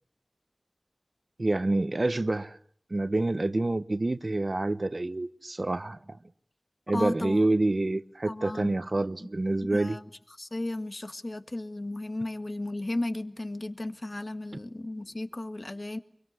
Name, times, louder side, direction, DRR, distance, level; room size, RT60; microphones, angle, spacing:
voice 1, 1.4-2.6 2.9-6.2 6.9-10.0, right 2 dB, 60° right, 1.1 m, -27 dB
voice 2, 6.9-7.5 8.2-9.3 9.6-10.1 10.4-16.0, left 1 dB, 50° left, 1.8 m, -35 dB
25.5 x 23.5 x 9.6 m
wide cardioid pair, 45°, 0 cm